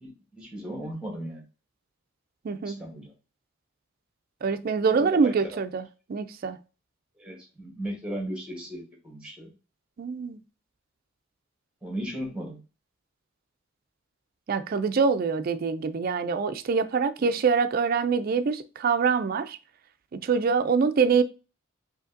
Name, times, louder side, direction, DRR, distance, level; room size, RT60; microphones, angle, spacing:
voice 1, 0.0-1.4 2.6-3.1 4.9-5.3 7.2-9.5 11.8-12.6 17.2-17.3, right 1 dB, 5° right, 1.1 m, -36 dB
voice 2, 2.4-2.8 4.4-6.6 10.0-10.4 14.5-19.6 20.2-21.2, right 5 dB, 45° right, 0.3 m, -25 dB
4.9 x 2.8 x 2.6 m
head